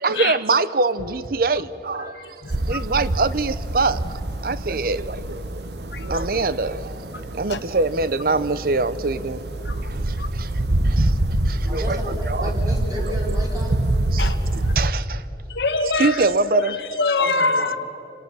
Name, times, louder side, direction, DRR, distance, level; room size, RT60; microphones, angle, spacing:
voice 1, 0.0-4.0 4.4-5.6 6.0-7.1 7.3-9.5 9.9-10.5 10.8-11.1 11.4-12.6 13.0-13.1 14.1-15.2 15.8-16.8 17.3-17.4, right 3 dB, 50° right, 0.6 m, -24 dB
voice 2, 2.0-2.8 5.9-6.2 7.5-7.6 9.6-9.9 10.2-10.3 14.2-14.7 15.5-17.8, left 3 dB, 70° left, 1.3 m, -25 dB
sound 1, 2.5-14.9, right 1 dB, 70° right, 1.0 m, -25 dB
voice 3, 11.7-13.9 17.2-17.8, equal, 20° right, 4.5 m, -33 dB
27.5 x 18.5 x 6.2 m
head